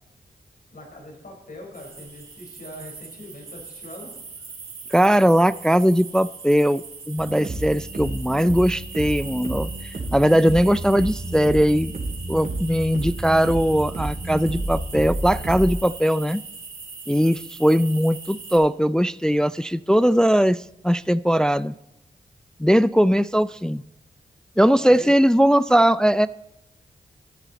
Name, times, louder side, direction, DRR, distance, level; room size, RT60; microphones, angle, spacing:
voice 1, 0.7-4.1 24.7-25.1, left 1 dB, 55° left, 1 dB, 4.4 m, -41 dB
sound 1, 1.7-18.6, right 4 dB, 70° right, 4.0 m, -41 dB
voice 2, 4.9-9.7 10.1-11.9 12.3-16.4 17.1-21.7 22.6-23.8 24.6-26.3, equal, 5° left, 16 dB, 0.3 m, -19 dB
sound 2, 7.2-15.7, right 2 dB, 50° right, 3.5 m, -31 dB
15.5 x 9.0 x 4.1 m, 0.86 s
cardioid pair, 50°, 17 cm